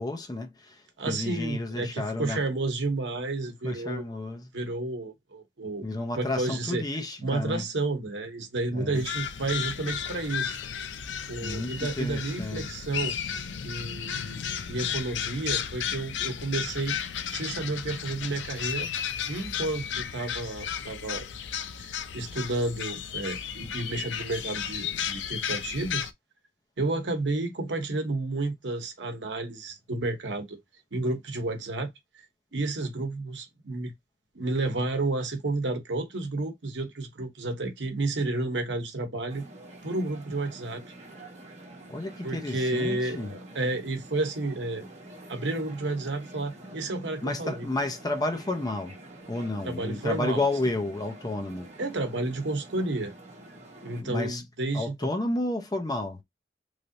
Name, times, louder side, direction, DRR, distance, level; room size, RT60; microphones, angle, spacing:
voice 1, 0.0-2.4 3.6-4.5 5.8-7.6 8.7-9.0 11.4-12.7 41.9-43.3 47.2-49.0 49.3-51.7 54.0-54.4 54.7-56.2, left 2 dB, 20° left, 0.6 m, -31 dB
voice 2, 1.0-4.0 4.5-5.9 6.1-6.8 7.2-10.6 11.3-13.2 13.6-17.0 17.3-18.9 19.3-21.3 21.8-26.1 26.8-30.6 30.9-31.9 32.5-33.9 34.3-39.4 39.8-40.8 42.2-44.9 45.3-47.7 49.6-50.4 51.8-53.1 53.8-55.1, right 2 dB, 85° right, 0.9 m, -31 dB
sound 1, 8.9-26.1, left 8 dB, 85° left, 0.5 m, -34 dB
sound 2, 39.3-54.0, right 1 dB, 40° right, 1.1 m, -47 dB
3.2 x 2.7 x 2.6 m
head